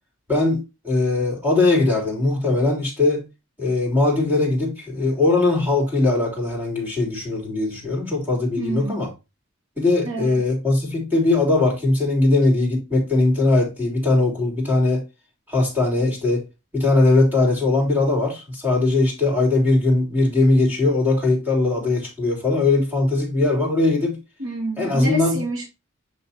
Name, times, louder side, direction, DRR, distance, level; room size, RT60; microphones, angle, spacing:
voice 1, 0.3-3.2 3.6-9.1 9.8-15.0 15.5-16.4 16.7-24.2 24.8-25.4, left 2 dB, 10° right, 3.1 m, -20 dB
voice 2, 8.6-9.0 10.0-10.4 24.4-25.7, right 1 dB, 85° right, 2.2 m, -27 dB
8.9 x 3.4 x 4.1 m
head